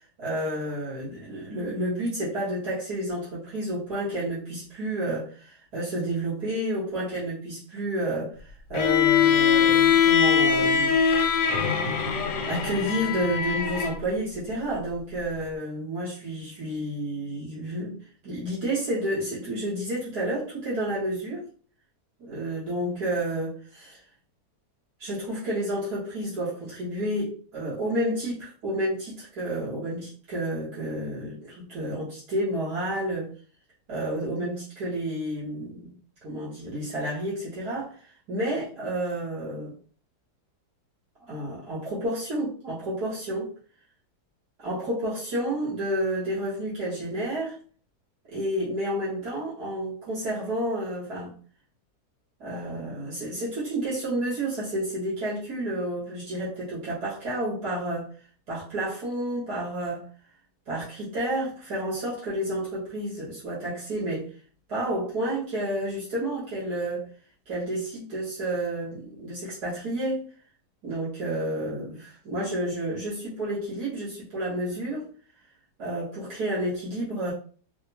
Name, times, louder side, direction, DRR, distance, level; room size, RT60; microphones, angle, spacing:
voice 1, 0.2-10.9 11.3-11.4 12.5-21.5 22.2-24.0 25.0-33.3 33.9-35.9 36.2-38.0 38.3-39.7 41.3-43.5 44.6-47.6 48.3-51.4 52.4-58.1 58.5-60.0 60.7-64.3 64.7-67.1 67.5-70.3 70.8-75.1 75.8-77.3, right 1 dB, 80° right, -9 dB, 2.1 m, -30 dB
Bowed string instrument, 8.7-14.0, left 7 dB, 65° left, 0.9 m, -22 dB
4.2 x 2.0 x 2.9 m, 0.42 s
omnidirectional pair, 1.7 m